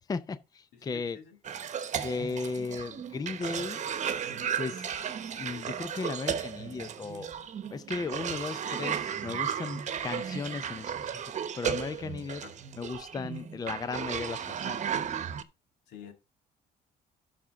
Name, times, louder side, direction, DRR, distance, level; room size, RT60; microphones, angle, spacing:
voice 1, 0.1-1.2 2.0-3.8 4.6-7.4 7.7-11.2 11.5-12.4 12.8-14.8, left 4 dB, 20° left, 0.5 m, -36 dB
voice 2, 0.7-1.4 12.4-12.5 15.9-16.1, left 8 dB, 85° left, 2.3 m, -48 dB
Cough, 1.4-15.4, right 8 dB, 45° right, 1.0 m, -35 dB
12.5 x 5.8 x 3.6 m
cardioid pair, 110°, 17 cm